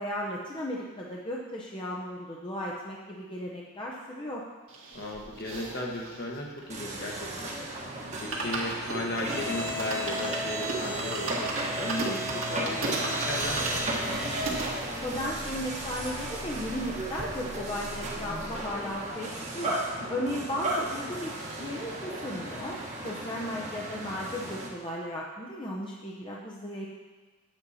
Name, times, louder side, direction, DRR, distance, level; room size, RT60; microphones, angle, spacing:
voice 1, 0.0-4.4 15.0-19.8 20.1-22.8 23.0-26.9, left 1 dB, 20° left, -4 dB, 0.8 m, -35 dB
sound 1, 4.7-7.5 7.8-7.9 8.1-14.7 15.3-15.4 15.5-15.6 15.9-16.9 17.2-17.3, right 2 dB, 65° right, 1.9 m, -36 dB
voice 2, 4.9-14.2 20.0-20.3 23.6-23.7, left 1 dB, 45° left, 0 dB, 1.3 m, -36 dB
sound 2, 6.7-24.7, right 1 dB, 30° right, 1.3 m, -34 dB
9.8 x 8.1 x 4.2 m, 1.3 s
head